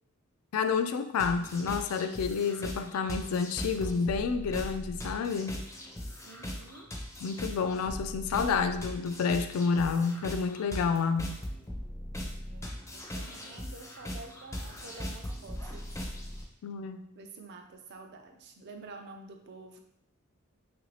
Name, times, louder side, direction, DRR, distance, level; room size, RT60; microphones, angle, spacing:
voice 1, 0.5-5.6 7.2-11.4 16.6-17.1, left 5 dB, 75° left, 9 dB, 0.3 m, -29 dB
sound 1, 1.2-16.4, equal, 15° left, 0.5 m, -39 dB
voice 2, 6.2-6.9 12.2-16.1 17.2-19.8, right 3 dB, 50° right, 4 dB, 0.4 m, -49 dB
3.2 x 2.5 x 3.2 m, 0.79 s
head